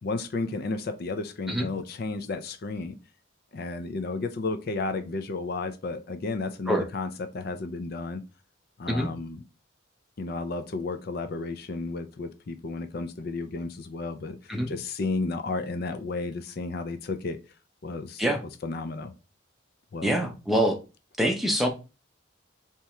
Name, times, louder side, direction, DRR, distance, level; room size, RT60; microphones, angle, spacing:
voice 1, 0.0-3.0 3.5-8.2 8.8-9.4 10.2-17.4 17.8-18.2 18.6-19.1 19.9-20.2, left 3 dB, 50° left, 9 dB, 0.4 m, -32 dB
voice 2, 20.0-20.8 21.2-21.7, equal, ahead, 2 dB, 0.6 m, -25 dB
3.5 x 2.9 x 4.2 m, 0.30 s
head